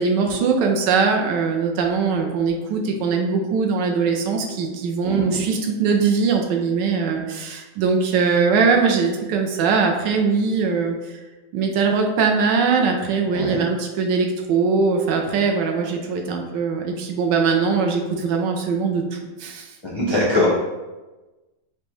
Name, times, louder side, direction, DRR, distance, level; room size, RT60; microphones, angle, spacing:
voice 1, 0.0-10.9 11.5-19.0 19.4-19.7, right 5 dB, 80° right, 2 dB, 1.2 m, -21 dB
voice 2, 5.0-5.4 13.3-13.6 19.8-20.5, left 1 dB, 40° left, -7 dB, 0.4 m, -22 dB
5.0 x 2.2 x 3.0 m, 1.2 s
omnidirectional pair, 1.9 m